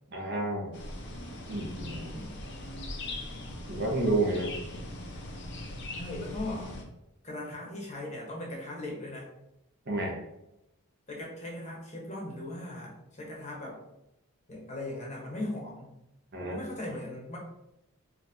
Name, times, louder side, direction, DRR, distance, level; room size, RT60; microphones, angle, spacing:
voice 1, 0.1-0.7 1.5-2.0 3.7-4.5 9.9-10.2 16.3-16.6, right 2 dB, 45° right, -1 dB, 0.8 m, -30 dB
Birds in Woods - daytime, 0.7-6.8, left 1 dB, 50° left, 0.6 m, -40 dB
voice 2, 1.8-2.4 6.0-6.7 7.2-9.3 11.1-13.8 14.5-15.9 16.4-17.4, left 1 dB, 30° left, -2 dB, 1.0 m, -39 dB
4.3 x 2.8 x 2.6 m, 0.87 s
head